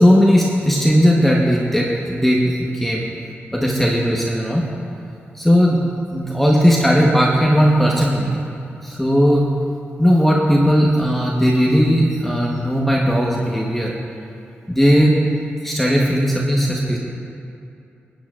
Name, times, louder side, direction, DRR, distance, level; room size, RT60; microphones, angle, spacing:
voice 1, 0.0-3.1 3.5-4.6 5.3-5.8 6.1-8.4 8.8-9.5 10.0-13.9 14.7-15.2 15.6-17.0, equal, 5° left, -4 dB, 1.1 m, -16 dB
21.0 x 9.0 x 2.5 m, 2.6 s
wide cardioid pair, 95°, 4 cm